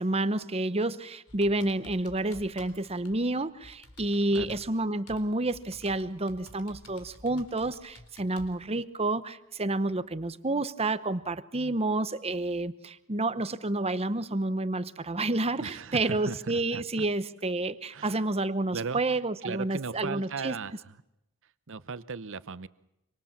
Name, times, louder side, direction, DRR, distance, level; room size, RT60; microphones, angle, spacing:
voice 1, 0.0-20.5, right 2 dB, 25° right, 13 dB, 1.0 m, -29 dB
Computer keyboard, 1.3-8.5, left 2 dB, 90° left, 3.9 m, -52 dB
voice 2, 15.6-17.1 17.9-18.2 18.7-19.0 19.4-20.8 21.7-22.7, right 4 dB, 60° right, 15 dB, 0.9 m, -37 dB
26.0 x 24.5 x 7.4 m, 0.88 s
head